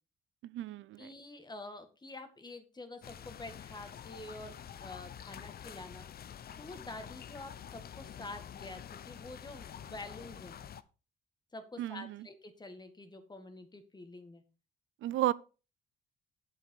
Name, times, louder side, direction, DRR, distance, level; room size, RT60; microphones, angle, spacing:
voice 1, 0.4-1.1 11.8-12.3 15.0-15.3, right 14 dB, 75° right, 0.5 m, -33 dB
voice 2, 1.0-4.5 4.8-6.3 6.6-10.6 11.5-14.4 15.2-15.3, left 2 dB, 20° left, 1.8 m, -47 dB
sound 1, 3.0-10.8, left 9 dB, 50° left, 0.7 m, -48 dB
8.4 x 6.9 x 4.8 m
cardioid pair, 90°, 20 cm